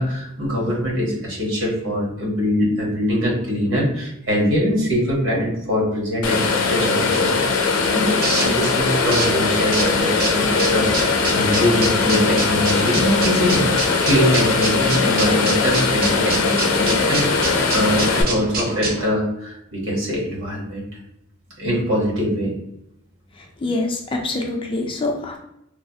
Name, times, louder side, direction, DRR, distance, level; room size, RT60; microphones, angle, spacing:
voice 1, 0.0-20.8 21.6-22.5, equal, 65° right, -3 dB, 1.1 m, -23 dB
sound 1, 6.2-18.2, left 4 dB, 85° left, 0.5 m, -20 dB
sound 2, 7.5-19.0, right 2 dB, 45° right, 0.7 m, -27 dB
voice 2, 23.4-25.4, left 2 dB, 25° left, 1 dB, 0.3 m, -25 dB
3.1 x 2.0 x 2.6 m, 0.79 s
head